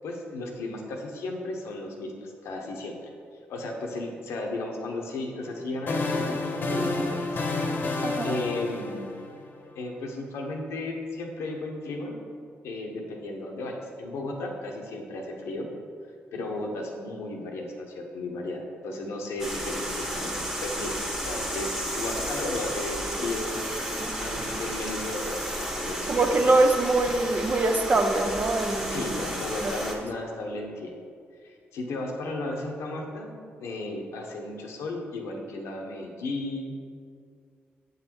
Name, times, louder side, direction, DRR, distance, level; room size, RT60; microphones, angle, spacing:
voice 1, 0.0-2.9 3.5-7.4 8.2-9.1 9.7-12.2 12.6-15.7 16.3-19.9 20.1-26.2 28.8-30.9 31.4-33.3 33.6-36.8, left 2 dB, 80° left, 1 dB, 0.9 m, -34 dB
sound 1, 5.4-9.7, left 2 dB, 50° left, 0.9 m, -29 dB
voice 2, 8.0-8.4 24.0-24.1 26.1-29.2 29.6-29.7, right 2 dB, 40° right, 6 dB, 0.7 m, -24 dB
sound 2, 19.4-29.9, equal, 10° right, 1.3 m, -32 dB
7.4 x 4.0 x 4.5 m, 2.2 s
cardioid pair, 70°, 5 cm